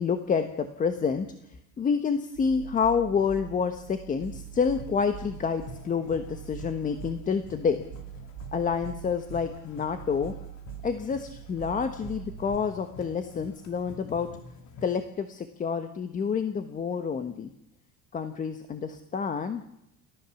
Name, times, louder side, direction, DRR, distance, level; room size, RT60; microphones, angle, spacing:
voice 1, 0.0-7.8 8.5-10.3 10.8-14.3 14.8-17.5 18.1-19.6, left 6 dB, 25° left, 9 dB, 1.3 m, -28 dB
sound 1, 2.3-12.6, right 15 dB, 85° right, 2.7 m, -44 dB
sound 2, 4.2-15.0, left 4 dB, 55° left, 3.0 m, -48 dB
30.0 x 15.0 x 7.1 m, 0.83 s
cardioid pair, 170°, 33 cm